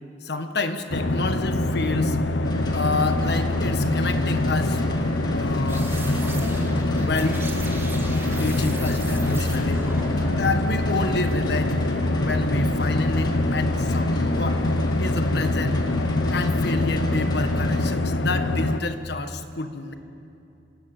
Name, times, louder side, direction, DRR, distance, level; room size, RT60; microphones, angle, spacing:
voice 1, 0.2-2.2 2.7-4.8 5.3-5.9 6.9-7.4 8.3-9.8 10.1-14.6 15.0-15.8 16.3-19.9, left 3 dB, 65° left, 8 dB, 1.5 m, -29 dB
sound 1, 0.9-18.8, left 2 dB, 85° left, 1.0 m, -24 dB
sound 2, 2.4-17.9, left 1 dB, 25° left, 2.0 m, -34 dB
sound 3, 5.7-11.8, right 1 dB, 15° right, 2.1 m, -36 dB
27.0 x 17.0 x 9.0 m, 2.8 s
head